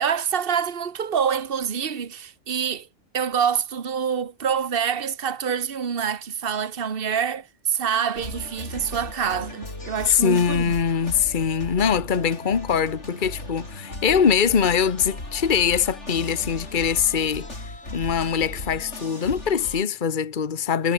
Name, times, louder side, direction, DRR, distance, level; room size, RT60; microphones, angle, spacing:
voice 1, 0.0-2.9 3.1-10.7, right 7 dB, 50° right, 1.5 m, -26 dB
sound 1, 8.1-19.8, left 2 dB, 75° left, 6.0 m, -37 dB
voice 2, 10.1-20.9, left 7 dB, 45° left, 1.3 m, -23 dB
omnidirectional pair, 1.2 m